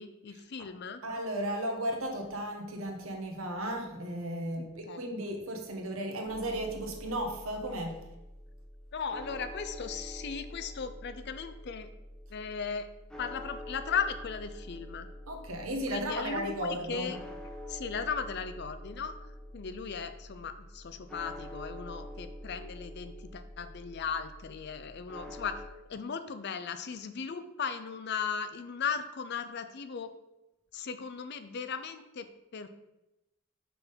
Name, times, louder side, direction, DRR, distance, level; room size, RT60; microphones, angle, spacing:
voice 1, 0.0-1.0 4.6-5.0 8.9-11.9 12.3-12.9 13.2-15.1 15.9-17.2 17.7-19.1 19.5-25.6 25.9-30.1 30.7-32.7, left 6 dB, 50° left, 10 dB, 0.5 m, -37 dB
voice 2, 1.0-8.0 15.3-17.1, right 1 dB, 70° right, 3 dB, 1.3 m, -35 dB
sound 1, 6.3-25.7, left 1 dB, 5° left, 0.6 m, -46 dB
5.8 x 3.7 x 5.5 m, 0.95 s
head